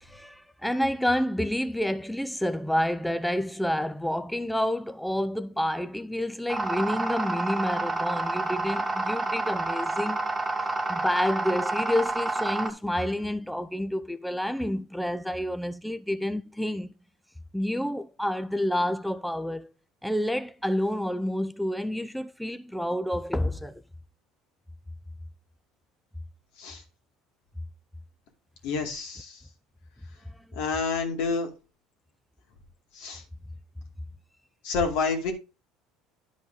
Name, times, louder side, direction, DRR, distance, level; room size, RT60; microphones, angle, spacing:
voice 1, 0.0-10.2 10.9-16.9 17.5-19.7 20.0-23.8 30.3-30.4, left 1 dB, ahead, 0.5 m, -29 dB
sound 1, 6.5-12.7, right 2 dB, 15° right, 1.4 m, -29 dB
voice 2, 28.6-29.4 30.6-31.5 32.9-33.2 34.6-35.3, left 4 dB, 75° left, 2.4 m, -28 dB
10.5 x 5.0 x 4.0 m
supercardioid pair, 95°, 0 cm